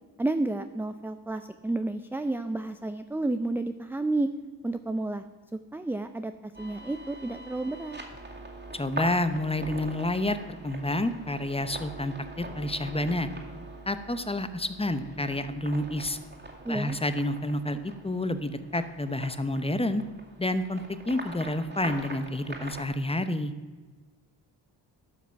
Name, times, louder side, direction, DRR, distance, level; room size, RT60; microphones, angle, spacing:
voice 1, 0.2-4.3 4.6-5.2 5.5-8.0 16.6-17.0, right 2 dB, 5° right, 9 dB, 0.4 m, -31 dB
sound 1, 6.5-22.9, right 2 dB, 25° right, 2.3 m, -43 dB
voice 2, 8.7-13.3 13.9-16.2 16.7-20.0 20.4-23.5, left 1 dB, 15° left, 11 dB, 0.8 m, -29 dB
12.0 x 5.9 x 5.9 m, 1.3 s
cardioid pair, 60°, 44 cm